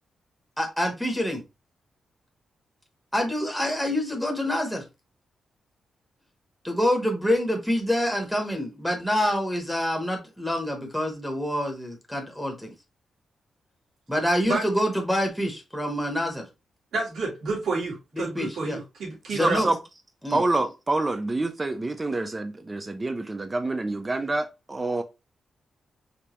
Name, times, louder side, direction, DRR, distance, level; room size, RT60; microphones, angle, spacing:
voice 1, 0.6-1.4 3.1-4.8 6.6-12.7 14.1-16.4 18.2-18.8 19.3-19.7 20.2-20.4, equal, ahead, 1.0 m, -26 dB
voice 2, 16.9-19.6, right 3 dB, 80° right, 2.7 m, -29 dB
voice 3, 19.3-19.8 20.3-25.0, right 2 dB, 20° right, 0.4 m, -27 dB
5.0 x 3.2 x 2.9 m
wide cardioid pair, 165°, 0 cm